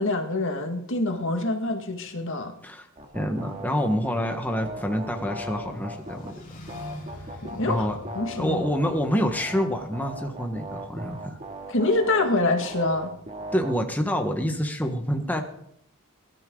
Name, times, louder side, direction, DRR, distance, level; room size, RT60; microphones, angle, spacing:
voice 1, 0.0-2.6 7.4-7.9 8.1-8.7 11.7-13.1, left 2 dB, 60° left, 1.9 m, -25 dB
sound 1, 3.0-6.3 6.7-13.8, right 1 dB, 30° right, 2.2 m, -38 dB
voice 2, 3.1-6.3 7.6-8.0 8.3-11.4 13.5-15.4, equal, 10° left, 1.4 m, -27 dB
sound 2, 4.4-9.9, equal, 40° left, 3.3 m, -45 dB
21.5 x 13.0 x 3.9 m
head